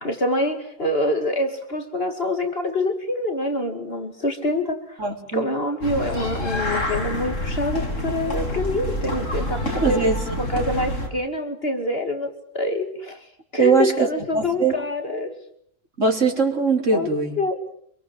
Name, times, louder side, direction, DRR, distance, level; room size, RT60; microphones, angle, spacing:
voice 1, 0.0-5.0 5.3-10.0 10.4-13.3 13.5-15.4 16.9-17.1 17.4-17.7, left 1 dB, 50° left, 6 dB, 2.5 m, -26 dB
voice 2, 5.0-5.5 9.7-10.5 13.6-14.1 14.3-14.7 16.0-17.4, right 4 dB, 65° right, 2 dB, 4.4 m, -21 dB
sound 1, 5.8-11.1, left 1 dB, 70° left, 5.1 m, -27 dB
26.0 x 23.0 x 7.7 m, 0.66 s
omnidirectional pair, 1.4 m